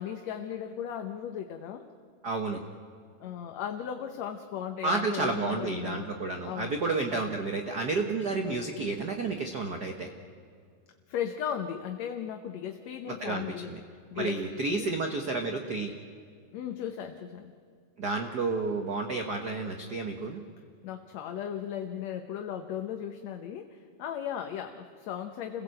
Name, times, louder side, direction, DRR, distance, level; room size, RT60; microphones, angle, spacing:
voice 1, 0.0-1.9 3.2-6.1 6.4-6.8 7.1-7.4 8.5-8.7 11.1-13.7 14.1-14.9 16.5-17.5 20.8-25.6, left 9 dB, 70° left, 5 dB, 2.0 m, -37 dB
voice 2, 2.2-2.6 4.8-10.1 13.1-13.8 14.1-15.9 18.0-20.4, right 3 dB, 50° right, 4 dB, 1.2 m, -31 dB
28.5 x 17.0 x 7.8 m, 2.2 s
omnidirectional pair, 3.6 m